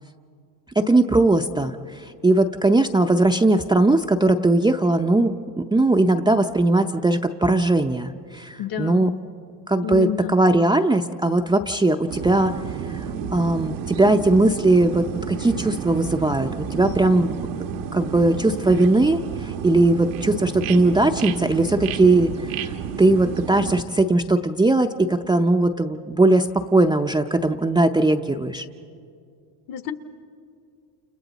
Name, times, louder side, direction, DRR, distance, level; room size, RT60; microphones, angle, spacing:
voice 1, 0.8-1.7 2.2-9.1 9.7-12.5 13.3-17.3 17.9-22.3 23.0-28.7, right 2 dB, 10° right, 4 dB, 0.5 m, -19 dB
voice 2, 8.6-9.1 9.8-10.3 29.7-29.9, left 10 dB, 50° left, 9 dB, 1.3 m, -29 dB
sound 1, 12.1-23.8, right 7 dB, 85° right, 1.3 m, -31 dB
29.0 x 29.0 x 4.0 m, 2.4 s
supercardioid pair, 100°, 44 cm